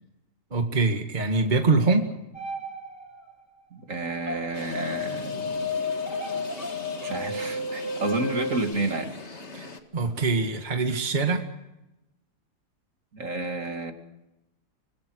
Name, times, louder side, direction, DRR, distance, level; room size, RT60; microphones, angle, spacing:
voice 1, 0.5-2.1 9.5-9.7 9.9-11.4, right 3 dB, 30° right, 4 dB, 1.9 m, -24 dB
sound 1, 2.3-3.3 4.3-8.6, left 2 dB, 10° left, 2.2 m, -32 dB
voice 2, 3.7-5.7 7.0-9.1 13.1-13.9, right 2 dB, 50° right, 5 dB, 2.8 m, -30 dB
sound 2, 4.5-9.8, left 3 dB, 45° left, 2.3 m, -41 dB
25.5 x 22.5 x 6.4 m, 0.96 s
omnidirectional pair, 1.7 m